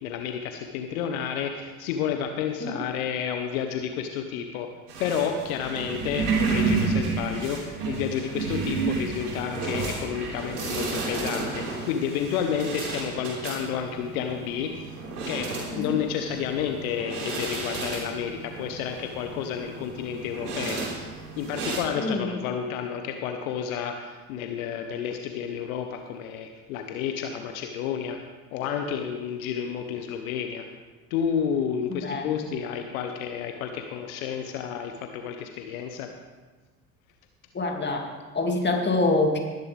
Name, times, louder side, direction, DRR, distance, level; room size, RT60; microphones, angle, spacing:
voice 1, 0.0-4.7 5.0-14.7 15.3-20.9 21.4-28.2 28.5-30.6 31.1-36.1, left 8 dB, 65° left, 5 dB, 1.1 m, -30 dB
sound 1, 4.9-21.8, right 4 dB, 75° right, 3.3 m, -31 dB
voice 2, 22.0-22.3 31.9-32.4 37.5-39.4, left 2 dB, 25° left, 2 dB, 2.5 m, -26 dB
19.5 x 10.5 x 3.5 m, 1.3 s
figure-of-eight pair, 65°, 45 cm